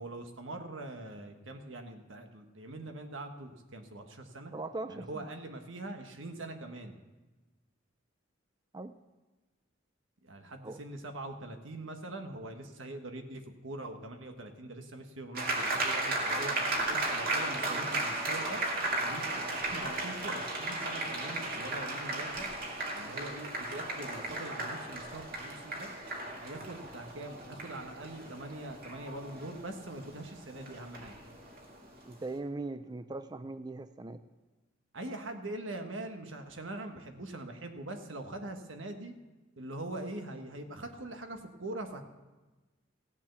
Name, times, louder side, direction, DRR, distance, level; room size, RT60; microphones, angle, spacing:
voice 1, 0.0-4.5 4.9-6.9 10.2-16.6 16.9-18.6 19.0-22.5 22.9-25.9 26.4-31.1 34.9-39.1 39.6-42.0, right 2 dB, 85° right, 5 dB, 1.5 m, -43 dB
voice 2, 4.5-5.3 8.7-8.9 10.6-10.8 32.0-34.2, right 2 dB, 20° right, 11 dB, 0.4 m, -40 dB
sound 1, 15.3-32.0, right 2 dB, 50° right, 2.1 m, -35 dB
16.5 x 7.4 x 6.9 m, 1.2 s
head